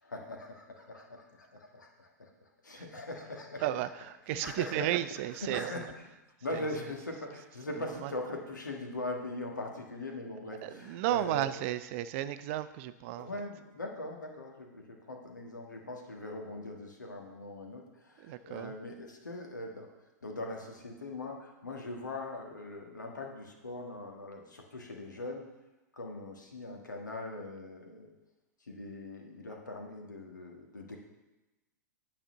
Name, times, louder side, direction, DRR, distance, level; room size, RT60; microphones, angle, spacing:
voice 1, 0.0-3.9 4.3-4.9 5.3-6.1 6.4-11.5 13.1-19.9 20.2-25.5 26.0-28.1 28.7-31.0, left 2 dB, 85° left, 2 dB, 1.4 m, -41 dB
voice 2, 3.6-5.9 6.5-6.6 8.0-8.1 10.6-13.3 18.2-18.7, right 13 dB, 45° right, 13 dB, 0.5 m, -33 dB
8.9 x 4.2 x 6.8 m, 1.0 s
figure-of-eight pair, 105°, 10 cm